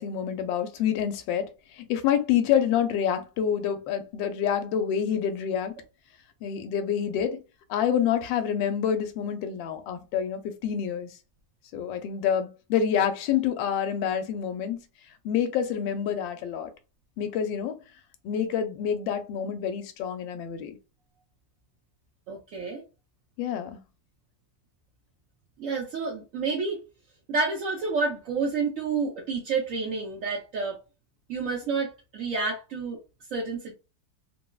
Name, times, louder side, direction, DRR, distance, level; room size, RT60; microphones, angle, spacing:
voice 1, 0.0-5.8 6.4-7.4 7.7-11.1 11.7-14.8 15.2-16.7 17.2-17.7 18.2-20.8 23.4-23.8, left 8 dB, 80° left, 1.3 m, -27 dB
voice 2, 22.3-22.8 25.6-26.8 27.3-30.8 31.3-33.0 33.3-33.7, right 4 dB, 65° right, 0.8 m, -29 dB
3.5 x 2.0 x 2.2 m
omnidirectional pair, 2.1 m